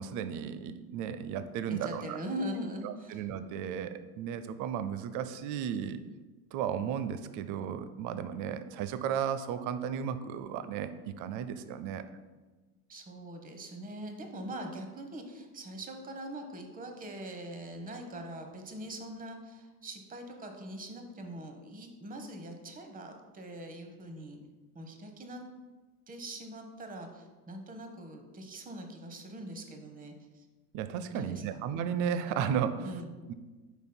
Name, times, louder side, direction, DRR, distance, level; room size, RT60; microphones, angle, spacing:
voice 1, 0.0-2.2 2.8-6.0 6.5-12.0 30.7-33.0 33.3-33.4, right 8 dB, 45° right, 12 dB, 0.6 m, -34 dB
voice 2, 1.7-3.2 12.9-24.4 24.7-25.4 26.1-30.5 31.1-31.6 32.8-33.1, right 1 dB, 20° right, 5 dB, 1.0 m, -42 dB
9.0 x 5.2 x 2.2 m, 1.3 s
hypercardioid pair, 80°, 45 cm